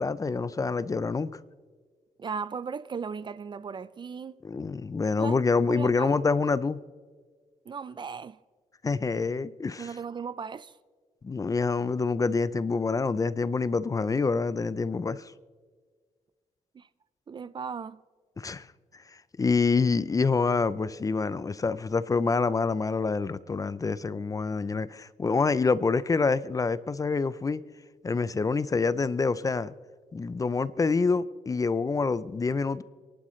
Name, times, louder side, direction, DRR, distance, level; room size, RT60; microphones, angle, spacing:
voice 1, 0.0-1.4 4.4-6.8 8.8-9.9 11.2-15.3 18.4-18.7 19.1-27.6 28.0-29.7 30.1-32.8, left 4 dB, 25° left, 0.5 m, -26 dB
voice 2, 2.2-4.4 5.2-5.4 5.7-6.2 7.7-8.4 9.8-10.8 16.7-16.9 17.3-18.0, right 6 dB, 35° right, 0.4 m, -36 dB
28.5 x 11.5 x 3.2 m
cardioid pair, 105°, 13 cm